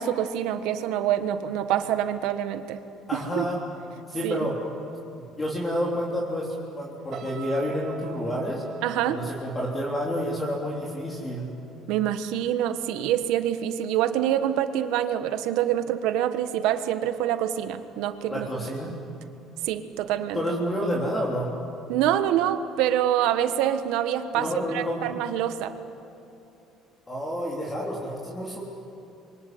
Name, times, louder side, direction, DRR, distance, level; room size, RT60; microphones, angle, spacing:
voice 1, 0.0-2.8 3.1-3.5 4.2-4.3 8.8-9.2 11.9-18.5 19.6-20.4 21.9-25.7, right 11 dB, 80° right, 9 dB, 1.5 m, -26 dB
voice 2, 3.1-3.6 4.1-4.6 5.4-8.6 9.1-11.5 18.3-19.0 20.3-21.6 24.3-25.0 27.1-28.6, equal, 15° left, -3 dB, 3.7 m, -29 dB
sound 1, 7.1-12.4 12.7-13.0, right 5 dB, 55° right, 3.8 m, -44 dB
27.0 x 23.5 x 9.4 m, 2.8 s
cardioid pair, 125°, 0 cm